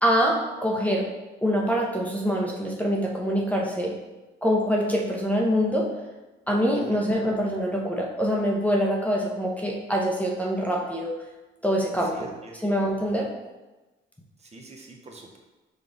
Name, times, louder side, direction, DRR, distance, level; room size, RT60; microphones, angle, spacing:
voice 1, 0.0-1.1 1.4-3.9 4.4-5.9 6.5-11.1 11.6-13.3, equal, 5° left, -2 dB, 0.7 m, -25 dB
voice 2, 12.1-12.6 14.4-15.4, right 2 dB, 35° right, 0 dB, 0.8 m, -45 dB
5.1 x 2.4 x 3.8 m, 1.1 s
cardioid pair, 90°, 20 cm